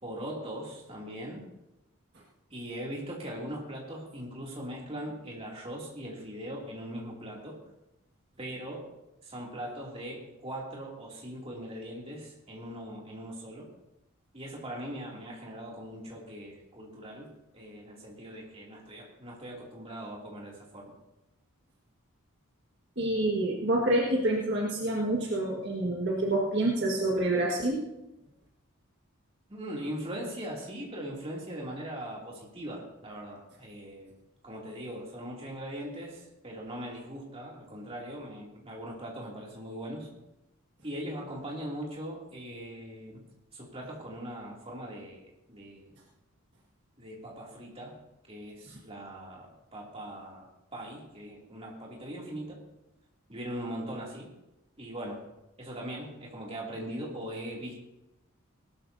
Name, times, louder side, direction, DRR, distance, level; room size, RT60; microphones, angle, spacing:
voice 1, 0.0-1.4 2.5-7.6 8.4-8.9 9.2-13.7 14.3-20.9 29.5-34.1 34.4-40.1 40.8-43.2 43.5-45.9 47.0-47.9 48.3-52.6 53.3-54.3 54.8-55.2 55.6-57.8, equal, 25° right, -3 dB, 2.8 m, -40 dB
voice 2, 23.0-27.8, right 1 dB, 50° right, -3 dB, 1.8 m, -27 dB
19.0 x 12.5 x 2.8 m, 0.93 s
head